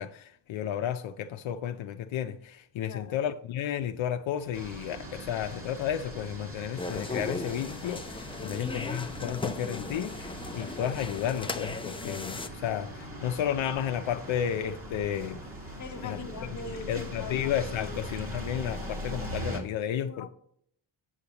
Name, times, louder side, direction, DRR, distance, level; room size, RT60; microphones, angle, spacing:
voice 1, 0.0-15.4 16.0-16.2 16.9-20.3, left 9 dB, 80° left, 0.6 m, -32 dB
sound 1, 4.5-19.6, equal, 30° right, 1.8 m, -41 dB
sound 2, 6.8-12.5, left 3 dB, 10° left, 0.5 m, -37 dB
voice 2, 8.4-9.0 15.8-17.5 17.8-18.0 20.1-20.3, left 4 dB, 40° left, 1.0 m, -42 dB
8.3 x 7.2 x 2.9 m
wide cardioid pair, 130°, 47 cm